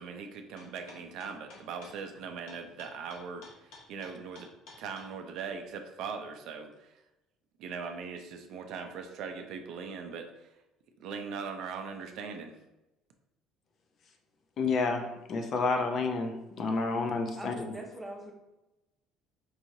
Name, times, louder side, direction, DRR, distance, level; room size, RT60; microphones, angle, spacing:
voice 1, 0.0-4.5 4.8-7.0 7.6-10.5 11.0-12.6, right 5 dB, 65° right, 6 dB, 0.4 m, -40 dB
sound 1, 0.6-5.1, left 3 dB, 80° left, 1.3 m, -51 dB
voice 2, 14.6-17.8, left 4 dB, 45° left, 4 dB, 0.5 m, -30 dB
voice 3, 17.4-18.3, right 1 dB, 10° right, 0 dB, 0.8 m, -42 dB
4.7 x 3.0 x 2.7 m, 0.97 s
cardioid pair, 125°, 0 cm